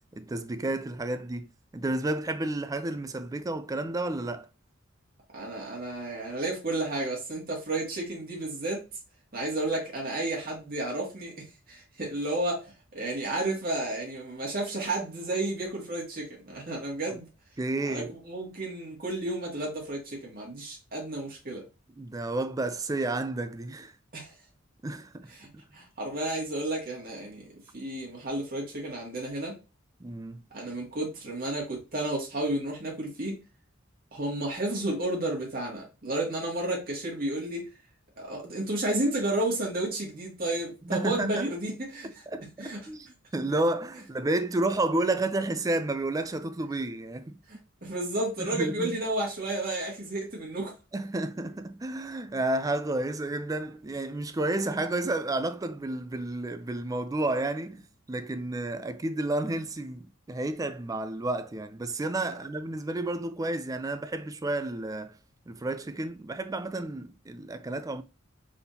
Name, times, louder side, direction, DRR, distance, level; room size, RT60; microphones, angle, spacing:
voice 1, 0.1-4.5 17.1-17.2 17.6-18.1 22.0-23.9 24.8-25.3 25.5-25.6 30.0-30.4 40.8-41.5 42.0-43.1 43.3-47.4 48.4-49.0 50.9-65.2 65.5-68.0, right 2 dB, 15° right, 0.4 m, -31 dB
voice 2, 5.3-8.8 9.3-17.3 17.8-21.6 24.1-24.3 25.3-27.5 27.7-29.6 30.5-33.4 34.1-37.7 38.2-42.1 42.6-42.9 47.5-50.7 62.3-62.4, right 1 dB, 45° right, 1.8 m, -32 dB
4.2 x 3.5 x 2.7 m
head